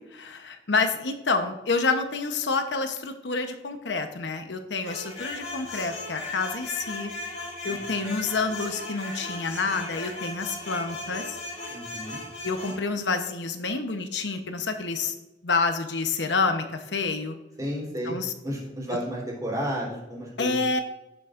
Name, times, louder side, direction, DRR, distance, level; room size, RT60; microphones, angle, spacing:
voice 1, 0.1-7.1 7.6-11.4 12.4-15.1 15.4-17.3 18.0-18.3 20.4-20.8, left 4 dB, 85° left, 7 dB, 0.9 m, -28 dB
sound 1, 4.8-12.8, left 2 dB, 35° left, 2.7 m, -37 dB
voice 2, 7.6-8.1 11.7-12.2 17.6-18.2 18.4-20.6, equal, 20° right, -4 dB, 3.5 m, -32 dB
17.5 x 7.0 x 2.5 m, 1.0 s
head